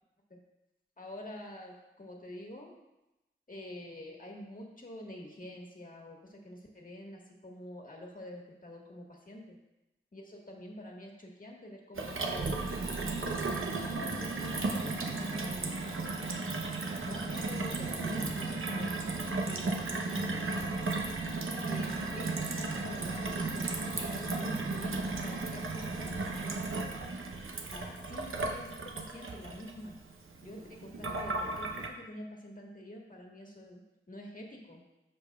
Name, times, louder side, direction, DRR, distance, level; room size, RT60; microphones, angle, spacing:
voice 1, 1.0-2.7 3.5-9.6 10.1-16.4 17.0-20.6 21.7-26.6 27.7-29.9 30.4-33.8 34.1-34.8, left 1 dB, 40° left, -1 dB, 1.6 m, -47 dB
Gurgling / Water tap faucet / Sink (filling or washing), 12.0-31.9, right 3 dB, 75° right, 0.8 m, -35 dB
14.0 x 5.2 x 2.4 m, 0.96 s
wide cardioid pair, 60°, 21 cm